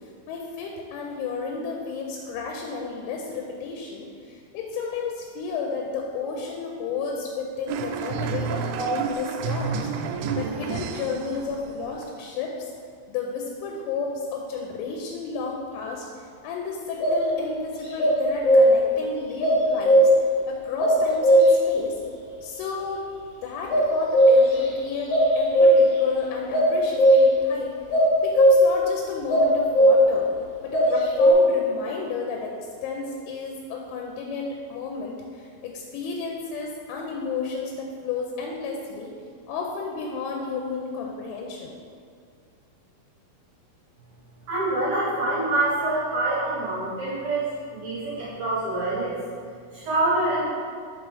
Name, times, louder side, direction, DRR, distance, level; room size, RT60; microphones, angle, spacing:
voice 1, 0.3-9.9 10.3-12.5 13.1-16.1 16.4-20.1 20.5-22.0 22.4-23.0 23.4-27.7 28.2-30.3 30.6-32.5 32.8-39.1 39.5-41.7, left 5 dB, 85° left, 0 dB, 3.0 m, -32 dB
sound 1, 7.7-12.2, right 6 dB, 90° right, 3.1 m, -30 dB
sound 2, 17.0-17.3 18.0-18.9 19.4-20.3 20.8-21.7 23.7-24.6 24.9-26.0 26.5-27.5 27.9-28.8 29.3-30.2 30.7-31.3, equal, 65° left, 1.9 m, -17 dB
voice 2, 44.5-47.4 47.7-49.2 49.7-50.5, right 2 dB, 70° right, -8 dB, 2.3 m, -25 dB
6.1 x 5.0 x 4.8 m, 2.1 s
omnidirectional pair, 5.7 m